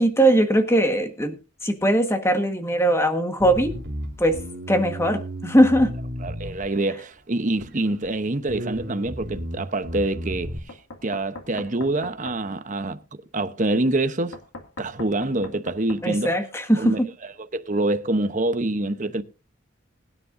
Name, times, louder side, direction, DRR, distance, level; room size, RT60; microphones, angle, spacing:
voice 1, 0.0-1.4 1.6-3.7 4.2-4.4 4.7-5.9 16.0-17.1, right 1 dB, 15° left, 1.5 m, -20 dB
Bass guitar, 3.4-7.0 7.6-8.1 8.5-10.6, equal, 55° right, 2.9 m, -34 dB
voice 2, 6.2-10.8 11.0-14.4 14.8-16.3 16.8-17.0 17.5-19.2, right 2 dB, 40° right, 0.9 m, -26 dB
Knock, 10.7-12.4 14.3-16.0, left 2 dB, 90° left, 2.1 m, -40 dB
21.0 x 9.7 x 2.7 m
head